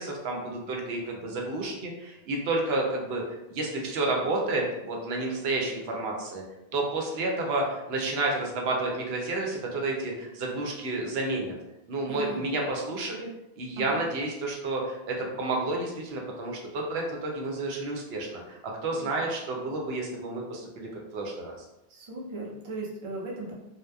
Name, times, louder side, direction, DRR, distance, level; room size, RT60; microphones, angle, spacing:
voice 1, 0.0-3.2 3.5-6.4 6.7-11.5 11.9-13.3 13.6-21.5, right 2 dB, 85° right, 0 dB, 0.8 m, -30 dB
voice 2, 12.1-12.4 13.8-14.1 18.8-19.1 21.9-23.5, right 2 dB, 40° right, -3 dB, 0.4 m, -38 dB
2.8 x 2.1 x 2.2 m, 0.91 s
omnidirectional pair, 1.0 m